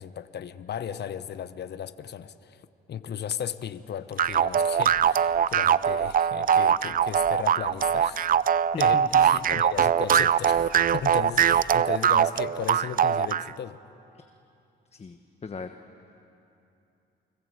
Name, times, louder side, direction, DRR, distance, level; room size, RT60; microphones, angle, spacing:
voice 1, 0.0-8.4 8.8-13.8, left 9 dB, 55° left, 12 dB, 1.1 m, -36 dB
sound 1, 4.2-13.5, right 8 dB, 45° right, 0.6 m, -22 dB
voice 2, 8.7-9.5 14.2-14.3 14.9-15.7, left 5 dB, 30° left, 6 dB, 1.3 m, -38 dB
29.5 x 24.5 x 8.1 m, 2.8 s
cardioid pair, 90°, 20 cm